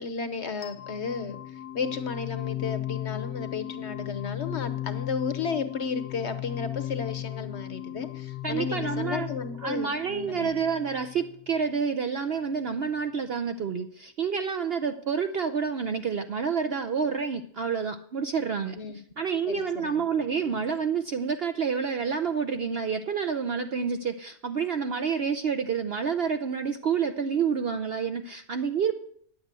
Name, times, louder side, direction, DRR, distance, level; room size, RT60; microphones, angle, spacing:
voice 1, 0.0-10.5 18.7-19.0 19.5-20.0, left 5 dB, 50° left, 11 dB, 1.1 m, -33 dB
sound 1, 0.6-11.6, left 13 dB, 80° left, 1.3 m, -36 dB
voice 2, 8.4-9.3 9.6-18.8 19.2-29.0, right 6 dB, 60° right, 9 dB, 0.7 m, -28 dB
10.0 x 8.2 x 8.1 m, 0.64 s
omnidirectional pair, 1.6 m